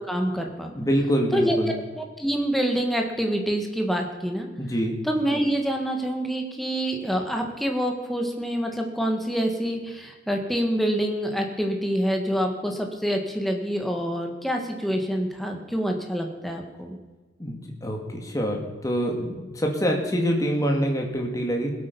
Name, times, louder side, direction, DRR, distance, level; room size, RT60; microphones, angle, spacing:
voice 1, 0.0-0.7 1.3-4.5 5.0-17.0, equal, ahead, 2 dB, 1.5 m, -26 dB
voice 2, 0.7-1.7 4.6-5.0 17.4-21.7, equal, 20° left, 1 dB, 2.0 m, -25 dB
20.0 x 8.6 x 5.4 m, 1.3 s
head